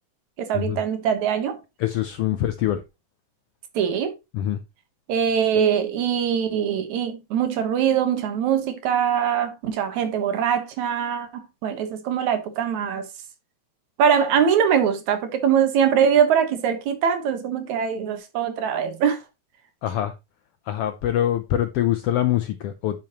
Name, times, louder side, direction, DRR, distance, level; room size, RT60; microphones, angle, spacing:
voice 1, 0.4-1.6 3.7-4.1 5.1-13.1 14.0-19.2, right 8 dB, 75° right, 2.6 m, -22 dB
voice 2, 1.8-2.8 4.3-4.6 19.8-20.1 20.6-23.0, left 12 dB, 80° left, 1.3 m, -24 dB
10.5 x 6.8 x 2.9 m
omnidirectional pair, 3.4 m